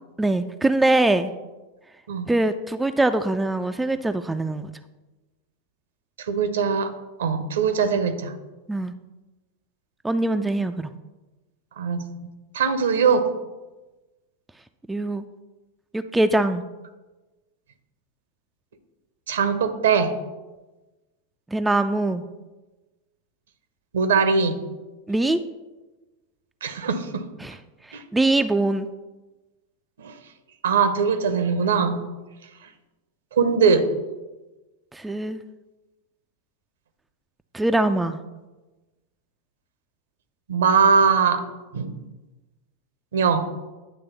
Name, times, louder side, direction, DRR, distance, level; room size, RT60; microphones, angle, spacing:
voice 1, 0.2-1.3 2.3-4.7 8.7-8.9 10.0-10.9 14.9-15.2 15.9-16.6 21.5-22.2 25.1-25.4 27.4-27.6 28.1-28.9 34.9-35.4 37.5-38.2, right 2 dB, 5° right, 8 dB, 0.3 m, -22 dB
voice 2, 6.3-6.9 7.2-8.3 11.8-12.0 12.5-13.3 19.3-20.1 23.9-24.6 26.6-27.3 27.9-28.0 30.0-30.1 30.6-32.0 33.3-33.9 40.5-41.4 41.7-42.0 43.1-43.5, right 5 dB, 60° right, 10 dB, 0.7 m, -21 dB
9.3 x 3.3 x 6.8 m, 1.1 s
figure-of-eight pair, 90°, 0 cm